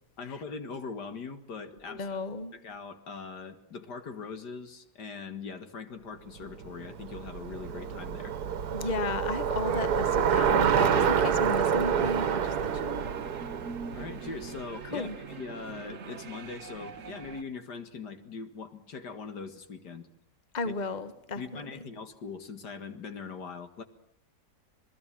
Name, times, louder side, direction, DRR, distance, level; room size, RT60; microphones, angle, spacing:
voice 1, 0.2-2.1 2.5-8.4 13.9-20.1 20.7-20.8 21.4-23.8, left 4 dB, 75° left, 2.3 m, -41 dB
voice 2, 1.9-2.5 8.7-13.2 14.9-15.2 20.5-21.6, left 3 dB, 25° left, 1.4 m, -34 dB
Bicycle, 6.5-14.8, right 8 dB, 65° right, 1.6 m, -28 dB
sound 1, 11.0-17.4, right 5 dB, 50° right, 1.4 m, -43 dB
27.5 x 20.0 x 7.5 m
omnidirectional pair, 1.8 m